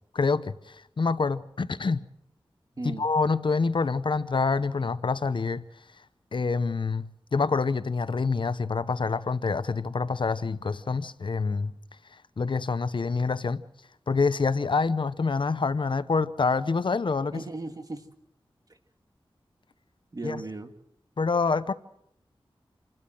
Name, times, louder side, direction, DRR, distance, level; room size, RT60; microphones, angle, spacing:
voice 1, 0.1-2.0 2.8-5.6 6.3-11.7 12.4-13.6 14.1-17.4 20.2-20.4 21.2-21.7, left 4 dB, 60° left, 0.8 m, -26 dB
voice 2, 17.3-18.0 20.1-20.7, right 2 dB, 40° right, 1.9 m, -36 dB
27.5 x 12.5 x 7.7 m
wide cardioid pair, 85°, 9 cm